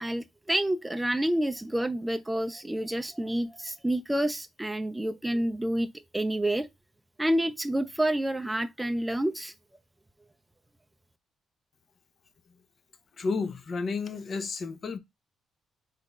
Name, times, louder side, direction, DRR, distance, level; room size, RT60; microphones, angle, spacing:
voice 1, 0.0-6.7 7.2-9.5, right 1 dB, 10° right, 0.5 m, -28 dB
voice 2, 13.2-15.0, left 4 dB, 45° left, 0.7 m, -31 dB
4.0 x 3.7 x 2.3 m
cardioid pair, 90°, 0 cm